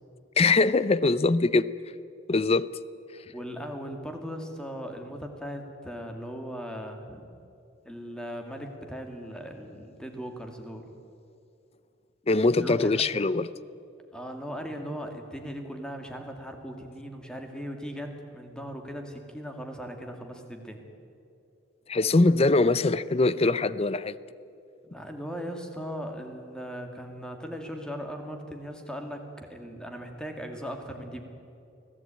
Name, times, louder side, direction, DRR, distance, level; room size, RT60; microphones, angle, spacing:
voice 1, 0.4-1.7 2.3-2.7 12.3-13.5 21.9-24.2, left 3 dB, 30° left, 0.6 m, -22 dB
voice 2, 3.3-7.3 7.8-10.8 12.6-13.0 14.1-20.8 24.8-31.2, equal, 5° left, 2.3 m, -38 dB
24.0 x 16.5 x 9.1 m
head